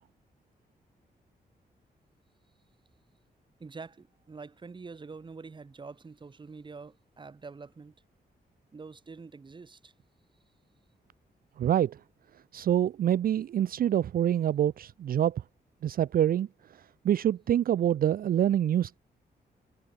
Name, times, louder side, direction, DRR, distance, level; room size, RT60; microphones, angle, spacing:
voice 1, 3.6-7.9 8.7-9.9, right 4 dB, 30° right, 1.2 m, -46 dB
voice 2, 11.6-12.0 12.5-15.4 15.8-16.5 17.0-19.0, right 10 dB, 60° right, 0.4 m, -26 dB
wide cardioid pair, 125°, 17 cm